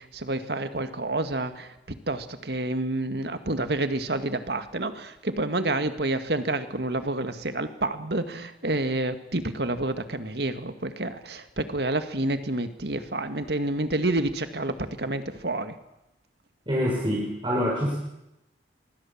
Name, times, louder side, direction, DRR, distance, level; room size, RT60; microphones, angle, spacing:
voice 1, 0.0-1.7 2.1-15.7, right 2 dB, 65° right, 9 dB, 1.9 m, -29 dB
voice 2, 16.7-18.0, equal, 25° right, -4 dB, 6.3 m, -26 dB
25.0 x 22.5 x 7.3 m, 0.90 s
head